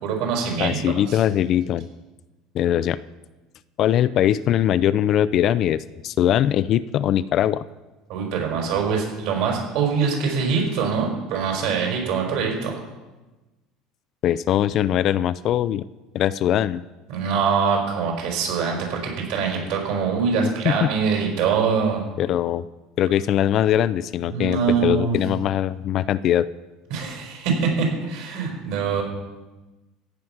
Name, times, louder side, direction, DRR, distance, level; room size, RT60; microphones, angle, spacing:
voice 1, 0.0-1.2 8.1-12.7 17.1-22.0 24.2-25.2 26.9-29.0, right 5 dB, 60° right, 1 dB, 4.7 m, -24 dB
voice 2, 0.6-1.9 2.5-3.0 3.8-7.6 14.2-15.9 16.1-16.8 20.6-20.9 22.2-22.6 23.0-26.5, left 11 dB, 40° left, 16 dB, 0.3 m, -21 dB
15.0 x 9.3 x 5.8 m, 1.1 s
cardioid pair, 165°, 0 cm